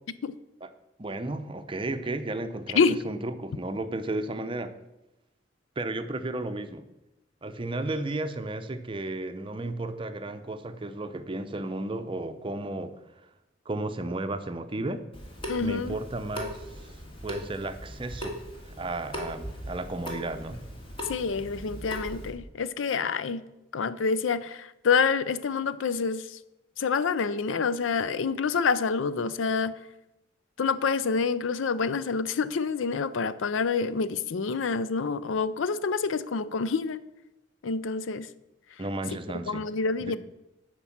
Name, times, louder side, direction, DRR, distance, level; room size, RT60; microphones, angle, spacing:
voice 1, 1.0-4.7 5.8-6.8 7.4-12.9 13.7-15.0 15.6-16.7 17.2-18.4 18.8-20.6 38.8-39.7 40.0-40.2, right 2 dB, 25° right, 9 dB, 0.6 m, -33 dB
Water tap faucet / Sink (filling or washing) / Drip, 15.1-22.3, equal, 25° left, 1.8 m, -39 dB
voice 2, 15.5-16.0 21.1-23.4 23.7-26.4 26.8-29.7 30.6-37.0 37.6-38.3 39.5-40.2, left 5 dB, 80° left, 15 dB, 0.5 m, -27 dB
11.5 x 4.7 x 7.2 m, 0.95 s
head